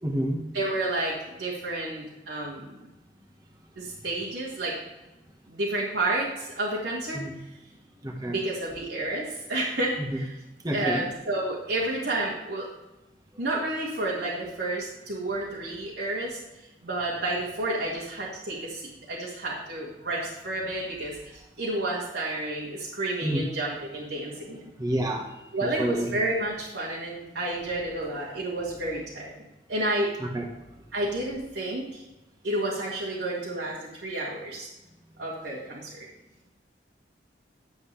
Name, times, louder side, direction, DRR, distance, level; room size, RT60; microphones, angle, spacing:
voice 1, 0.0-0.4 7.1-7.3 8.0-8.4 10.0-10.2 10.6-11.0 23.2-23.4 24.8-25.3 25.8-26.1 30.2-30.5, right 1 dB, 20° right, 1 dB, 1.5 m, -28 dB
voice 2, 0.5-2.7 3.8-4.8 5.5-7.3 8.2-10.4 10.7-12.7 13.4-16.4 16.8-21.2 21.6-24.6 25.5-29.3 29.7-30.1 30.9-32.0 32.4-34.7 35.2-36.0, right 2 dB, 75° right, -6 dB, 2.3 m, -30 dB
12.0 x 8.1 x 3.5 m, 1.0 s
head